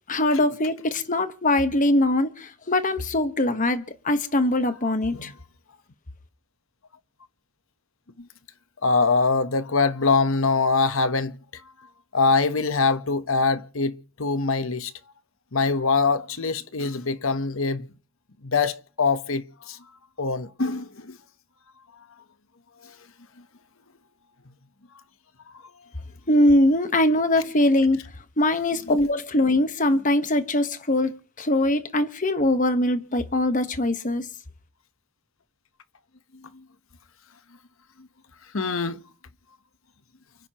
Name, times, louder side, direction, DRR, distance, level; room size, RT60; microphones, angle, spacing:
voice 1, 0.1-5.3 26.3-28.0 28.4-34.3, left 1 dB, 40° left, 1.4 m, -22 dB
voice 2, 4.8-5.3 8.2-8.3 8.8-11.6 12.1-14.9 15.5-17.9 18.4-19.8 20.2-21.2 22.8-23.0 36.3-36.7 38.0-38.1 38.5-39.0, left 4 dB, 70° left, 1.2 m, -24 dB
29.5 x 10.0 x 3.1 m
head